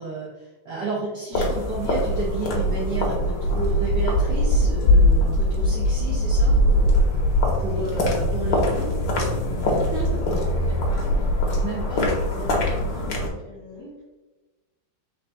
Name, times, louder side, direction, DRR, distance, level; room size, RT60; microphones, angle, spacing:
voice 1, 0.0-6.6 7.6-8.9 11.6-12.1, right 4 dB, 65° right, -6 dB, 1.4 m, -31 dB
sound 1, 1.3-13.3, left 1 dB, 65° left, 1.4 m, -21 dB
voice 2, 7.8-8.3 9.7-11.6 11.9-14.0, left 1 dB, 35° right, -6 dB, 1.8 m, -40 dB
4.6 x 3.7 x 2.6 m, 1.1 s
omnidirectional pair, 2.3 m